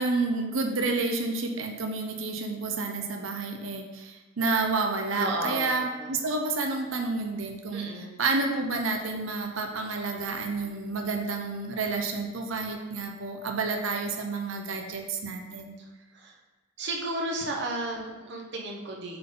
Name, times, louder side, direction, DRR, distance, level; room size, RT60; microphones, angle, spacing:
voice 1, 0.0-7.9 8.2-15.8, right 3 dB, 85° right, 4 dB, 0.7 m, -30 dB
voice 2, 5.1-6.1 7.7-8.2 15.8-15.9 16.1-16.4 16.8-19.2, right 1 dB, 60° right, 0 dB, 1.0 m, -33 dB
7.8 x 3.9 x 3.8 m, 1.2 s
head